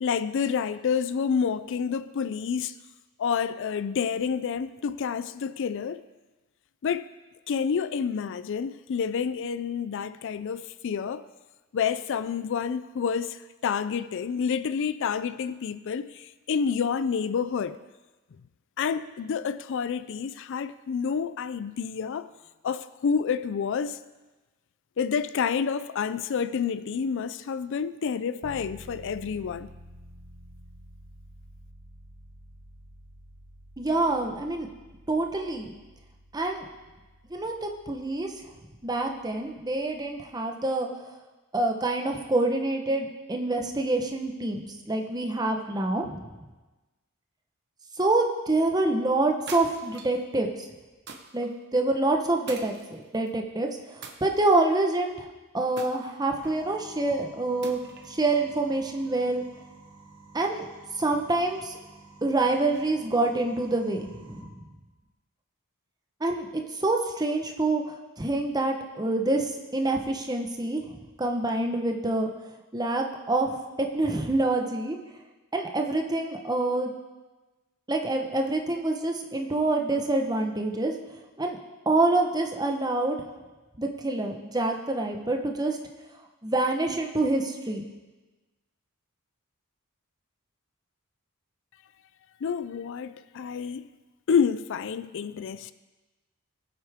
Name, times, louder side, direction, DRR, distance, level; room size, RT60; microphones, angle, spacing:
voice 1, 0.0-2.8 3.2-6.0 6.8-7.1 7.5-11.2 11.7-17.8 18.8-22.3 22.6-24.0 25.0-29.7 92.4-93.9 94.3-95.7, left 6 dB, 60° left, 0.4 m, -29 dB
sound 1, 28.4-40.3, equal, 90° right, 1.4 m, -51 dB
voice 2, 33.8-34.7 35.1-35.7 36.3-36.7 37.3-38.3 38.8-40.9 41.5-46.2 48.0-50.5 51.3-55.2 55.5-57.8 58.1-59.4 60.3-60.7 61.0-61.8 62.2-64.5 66.2-70.8 71.2-72.3 72.7-75.0 75.5-76.9 77.9-80.9 81.4-81.6 81.9-83.2 83.8-85.8 86.4-87.8, right 2 dB, 20° right, 1.0 m, -26 dB
sound 2, 49.5-50.2 51.1-51.5 52.5-53.3 54.0-54.8 55.8-56.6 57.6-58.2, right 5 dB, 50° right, 1.1 m, -43 dB
sound 3, 56.3-64.4, right 2 dB, 40° left, 1.7 m, -51 dB
19.5 x 8.1 x 3.6 m
head